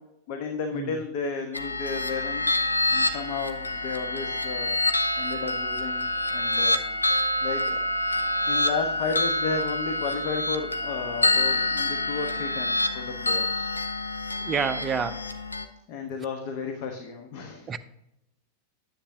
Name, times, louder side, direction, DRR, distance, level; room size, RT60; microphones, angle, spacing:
voice 1, 0.3-2.6 2.9-4.8 5.2-6.0 6.3-6.8 7.4-7.8 8.5-13.6 15.9-17.7, left 4 dB, 45° left, 1.1 m, -33 dB
sound 1, 1.5-15.6, left 1 dB, 80° left, 0.7 m, -27 dB
voice 2, 14.4-15.3 17.7-17.8, right 6 dB, 20° right, 0.6 m, -28 dB
10.0 x 7.6 x 2.8 m
figure-of-eight pair, 90°, 0 cm